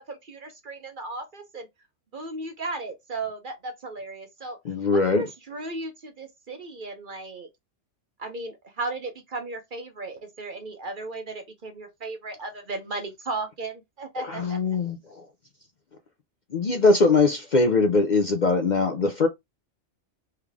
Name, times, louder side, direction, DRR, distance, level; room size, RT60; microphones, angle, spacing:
voice 1, 0.0-1.7 2.1-4.6 4.9-7.5 8.2-14.6, right 3 dB, 45° right, 0.9 m, -35 dB
voice 2, 4.6-5.3 14.3-15.2 16.5-19.3, left 3 dB, 50° left, 0.6 m, -21 dB
3.6 x 3.3 x 3.5 m
omnidirectional pair, 1.3 m